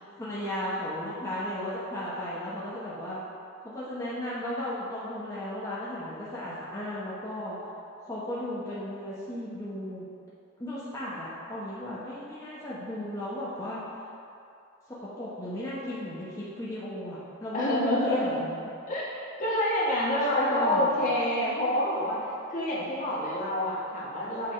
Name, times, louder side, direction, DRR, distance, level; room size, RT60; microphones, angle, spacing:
voice 1, 0.0-3.2 3.6-7.6 8.0-10.1 10.6-13.8 15.0-18.7 20.3-20.9, left 1 dB, 15° left, -9 dB, 0.8 m, -35 dB
voice 2, 17.5-18.4 18.9-19.1 19.4-22.2 22.5-24.5, left 1 dB, 40° left, -6 dB, 1.3 m, -27 dB
7.7 x 3.4 x 4.3 m, 2.6 s
head